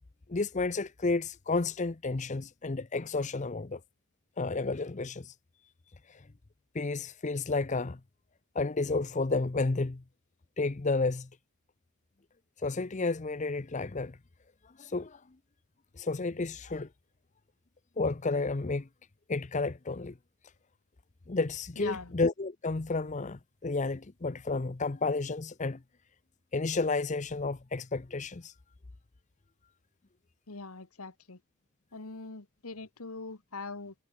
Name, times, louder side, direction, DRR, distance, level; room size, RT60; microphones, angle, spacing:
voice 1, 0.3-3.8 4.4-5.3 6.1-6.2 6.7-8.0 8.5-10.0 10.6-11.3 12.6-14.2 14.8-15.2 16.0-16.9 18.0-18.9 19.3-20.1 21.3-25.8 26.5-28.5, left 3 dB, 30° left, 0.6 m, -31 dB
voice 2, 21.7-22.1 30.5-31.4 31.9-33.9, left 3 dB, 75° left, 1.7 m, -42 dB
head